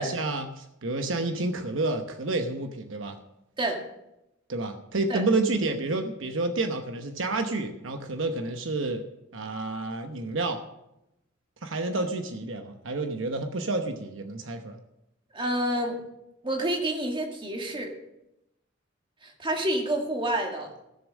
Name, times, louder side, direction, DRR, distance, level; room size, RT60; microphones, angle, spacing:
voice 1, 0.0-3.2 4.5-9.0 9.3-10.6 11.6-14.8, right 2 dB, 70° right, 5 dB, 1.0 m, -29 dB
voice 2, 15.3-16.0 16.4-17.9 19.2-20.7, right 1 dB, 25° right, 2 dB, 2.0 m, -28 dB
16.5 x 7.1 x 6.4 m, 0.88 s
head